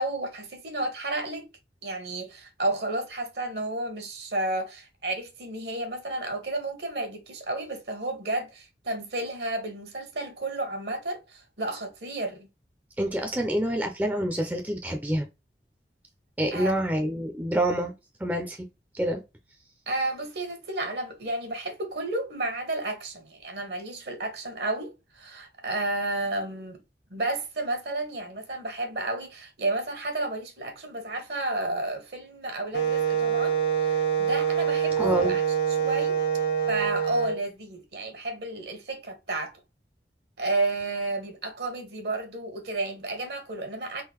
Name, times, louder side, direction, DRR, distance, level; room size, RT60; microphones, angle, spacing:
voice 1, 0.0-1.5 1.8-12.5 16.5-16.8 19.9-26.8 27.1-35.4 35.7-36.2 36.7-39.5 40.4-44.0, right 2 dB, 70° right, 1.1 m, -32 dB
voice 2, 13.0-15.3 16.4-17.9 18.2-18.7 18.9-19.2 35.0-35.4, right 1 dB, 10° right, 0.4 m, -27 dB
Wind instrument woodwind instrument, 32.7-37.4, right 7 dB, 75° left, 0.7 m, -25 dB
3.8 x 2.5 x 2.9 m
head